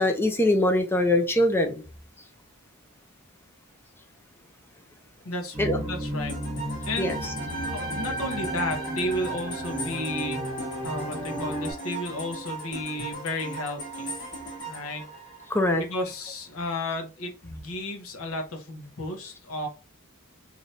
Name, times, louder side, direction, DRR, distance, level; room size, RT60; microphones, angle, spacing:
voice 1, 0.0-1.8 5.6-5.8 7.0-7.2 15.5-15.8, left 1 dB, 10° left, 0.4 m, -22 dB
voice 2, 5.2-7.3 7.6-10.4 10.8-14.1 14.7-15.1 15.8-19.7, left 1 dB, 75° left, 0.8 m, -33 dB
sound 1, 5.5-11.7, equal, 20° right, 1.1 m, -33 dB
sound 2, 6.3-16.0, right 2 dB, 40° left, 1.4 m, -38 dB
3.2 x 2.5 x 2.7 m
head